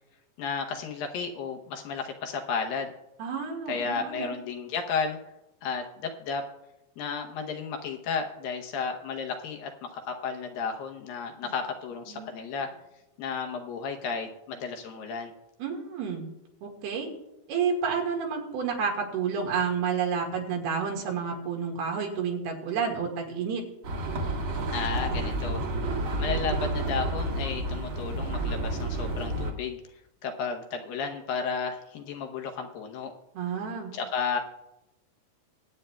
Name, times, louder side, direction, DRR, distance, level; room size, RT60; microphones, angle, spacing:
voice 1, 0.4-2.9 3.7-5.2 5.6-6.5 7.0-12.7 13.2-15.3 24.7-25.6 26.2-29.8 30.2-33.1 33.9-34.4, left 5 dB, 75° left, 3 dB, 2.5 m, -33 dB
voice 2, 3.2-4.3 12.1-12.3 15.6-16.3 16.6-17.1 17.5-23.6 33.4-33.9, right 6 dB, 85° right, 1 dB, 3.7 m, -30 dB
sound 1, 23.8-29.5, right 1 dB, 50° right, 1.7 m, -30 dB
23.0 x 8.7 x 2.3 m, 0.90 s
omnidirectional pair, 4.4 m